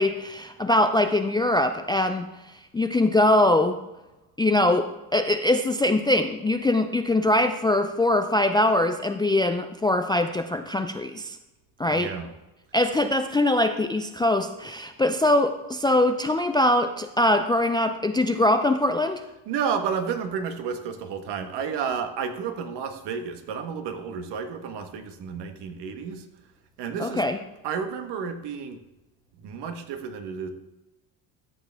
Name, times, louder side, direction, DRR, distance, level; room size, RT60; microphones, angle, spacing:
voice 1, 0.0-2.3 2.7-3.8 4.4-11.4 11.8-12.1 12.7-19.2 27.0-27.4, left 1 dB, 10° left, 7 dB, 0.3 m, -22 dB
voice 2, 11.8-12.3 19.4-26.2 26.8-27.2 27.6-28.8 29.4-30.5, right 6 dB, 60° right, 7 dB, 1.4 m, -31 dB
13.5 x 7.2 x 3.5 m, 1.0 s
supercardioid pair, 105°, 46 cm